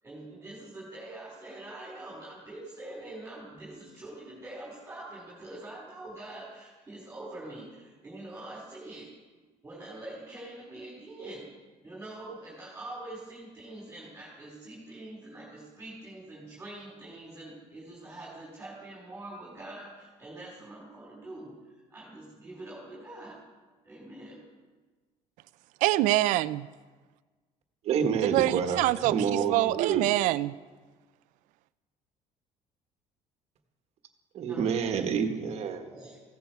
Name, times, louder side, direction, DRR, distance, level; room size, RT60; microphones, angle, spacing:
voice 1, 0.0-9.1 9.6-11.5 11.8-23.4 23.8-24.5 34.5-34.6 35.0-35.1 35.8-36.2, right 2 dB, 15° right, -5 dB, 4.2 m, -44 dB
voice 2, 25.8-26.7 28.3-29.1 29.5-30.5, right 17 dB, 80° right, 16 dB, 0.5 m, -25 dB
voice 3, 27.8-30.1 34.3-35.8, right 7 dB, 55° right, 6 dB, 1.5 m, -28 dB
15.5 x 14.0 x 4.6 m, 1.3 s
cardioid pair, 120°, 13 cm